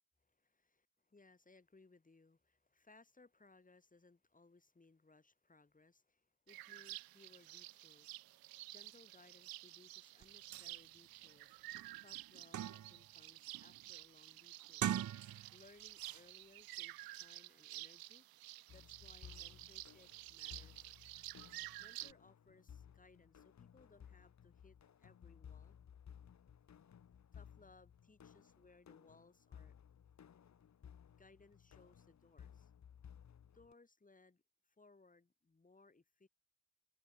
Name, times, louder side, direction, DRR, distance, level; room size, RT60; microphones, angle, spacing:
voice 1, 0.2-11.6 12.0-14.9 15.5-18.3 18.7-20.9 21.8-25.8 27.3-29.7 31.2-32.7 33.5-36.3, left 3 dB, 20° left, 6.5 m, -66 dB
sound 1, 6.5-22.1, right 18 dB, 65° right, 0.6 m, -51 dB
sound 2, 10.2-10.3 10.5-10.7 11.2-11.3 11.7-13.1 13.5-13.8 14.6-15.6 16.0-16.2, right 10 dB, 45° right, 1.1 m, -42 dB
sound 3, 18.7-33.7, left 8 dB, 45° left, 1.8 m, -59 dB
cardioid pair, 85°, 40 cm